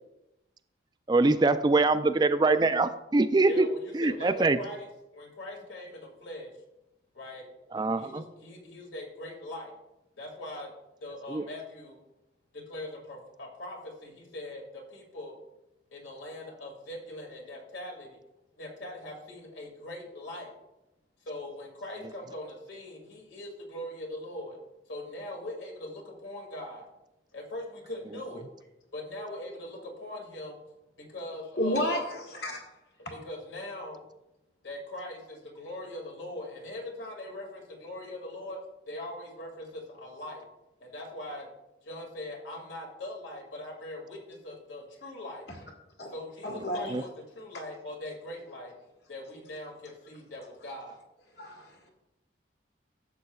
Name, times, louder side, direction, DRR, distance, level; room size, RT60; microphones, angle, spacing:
voice 1, 1.1-3.6 3.9-4.6 7.7-8.2 11.3-11.4 46.9-47.0, right 3 dB, 20° right, 11 dB, 0.3 m, -23 dB
voice 2, 3.5-6.5 7.1-7.5 8.0-9.7 10.2-10.7 11.0-12.0 12.5-15.4 15.9-18.2 18.6-20.5 21.2-24.6 24.9-26.9 27.3-28.5 28.9-30.6 31.0-32.1 33.1-34.0 34.6-38.6 38.9-40.4 40.8-41.5 41.8-45.5 46.1-48.7 49.1-51.0, left 1 dB, 80° left, 0 dB, 2.2 m, -41 dB
voice 3, 31.6-32.6 46.0-46.1 46.4-46.9 51.4-51.6, left 1 dB, 65° left, 1 dB, 1.8 m, -30 dB
12.0 x 7.5 x 2.3 m, 0.92 s
head